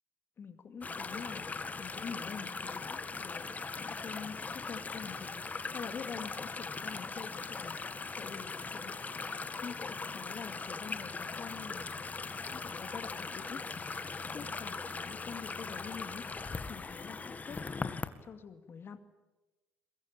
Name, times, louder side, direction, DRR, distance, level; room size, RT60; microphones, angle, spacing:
voice 1, 0.4-1.4 1.8-7.8 8.1-9.3 9.6-11.9 12.5-13.6 14.3-16.2 16.7-19.0, left 6 dB, 50° left, 9 dB, 2.4 m, -46 dB
sound 1, 0.8-18.1, left 4 dB, 30° left, 1.9 m, -40 dB
22.5 x 22.0 x 9.0 m, 1.1 s
hypercardioid pair, 55°, 5 cm